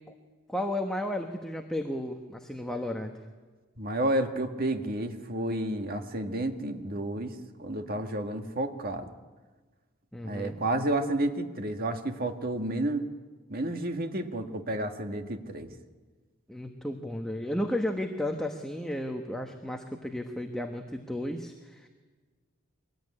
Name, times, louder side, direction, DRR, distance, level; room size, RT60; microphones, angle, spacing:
voice 1, 0.5-3.1 10.1-10.6 16.5-21.9, left 1 dB, 5° left, 3 dB, 1.3 m, -33 dB
voice 2, 3.8-9.1 10.2-13.0 13.5-15.7, right 1 dB, 45° right, 5 dB, 2.0 m, -31 dB
23.5 x 20.5 x 9.9 m, 1.4 s
head